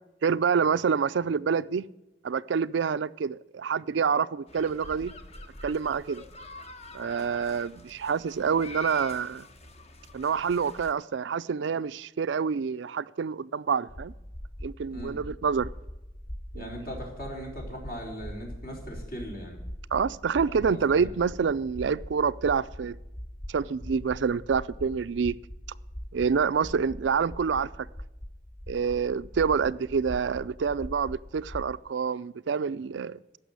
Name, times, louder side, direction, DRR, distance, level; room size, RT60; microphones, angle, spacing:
voice 1, 0.2-1.8 2.2-5.1 5.6-6.2 6.9-9.5 10.1-14.1 14.6-15.7 16.5-16.9 19.9-23.0 23.5-25.4 26.1-27.9 28.7-33.2, right 6 dB, 70° right, 0.4 m, -27 dB
sound 1, 4.5-10.9, left 2 dB, 35° left, 1.1 m, -46 dB
sound 2, 13.9-31.7, equal, 15° left, 0.4 m, -42 dB
voice 2, 16.6-19.6 20.5-21.1, equal, 55° left, 4.1 m, -39 dB
15.5 x 6.1 x 9.4 m
head